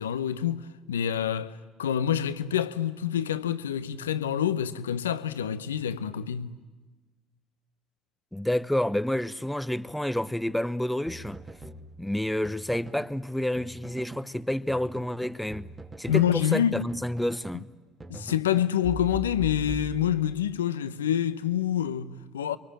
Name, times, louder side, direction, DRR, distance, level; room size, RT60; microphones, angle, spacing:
voice 1, 0.0-6.5 16.1-16.9 18.1-22.6, left 10 dB, 90° left, 0.8 m, -27 dB
voice 2, 8.3-11.4 12.0-15.7 16.0-17.7, left 1 dB, 5° left, 0.9 m, -29 dB
sound 1, 11.1-13.2 13.6-14.3 14.7-17.7 18.0-20.4, right 2 dB, 25° right, 2.4 m, -42 dB
28.0 x 23.0 x 8.8 m
hypercardioid pair, 60°, 0 cm